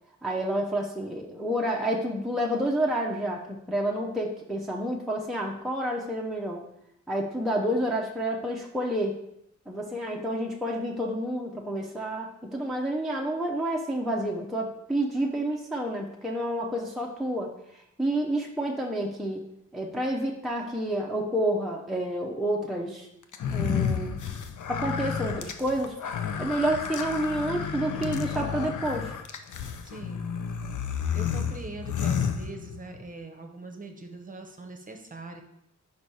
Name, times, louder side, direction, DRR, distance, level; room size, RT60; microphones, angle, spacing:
voice 1, 0.2-6.7 7.1-9.2 9.7-19.5 19.7-23.1 23.5-24.2 24.7-29.1, right 1 dB, ahead, -1 dB, 0.5 m, -29 dB
sound 1, 23.3-33.0, left 7 dB, 80° left, 0.6 m, -31 dB
voice 2, 29.8-30.3 31.1-35.4, right 3 dB, 30° right, 4 dB, 0.8 m, -42 dB
5.4 x 4.1 x 4.6 m, 0.79 s
wide cardioid pair, 150°, 30 cm